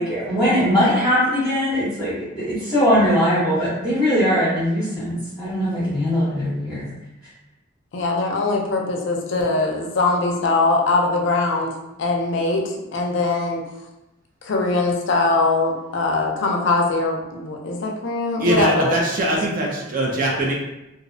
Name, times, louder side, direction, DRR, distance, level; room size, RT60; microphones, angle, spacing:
voice 1, 0.0-6.9, equal, 5° left, -14 dB, 0.7 m, -20 dB
voice 2, 7.9-11.7 12.0-13.6 14.4-19.0, left 3 dB, 60° left, 1 dB, 0.4 m, -21 dB
voice 3, 18.4-20.5, right 1 dB, 40° right, -2 dB, 0.3 m, -22 dB
2.4 x 2.0 x 2.5 m, 0.96 s
head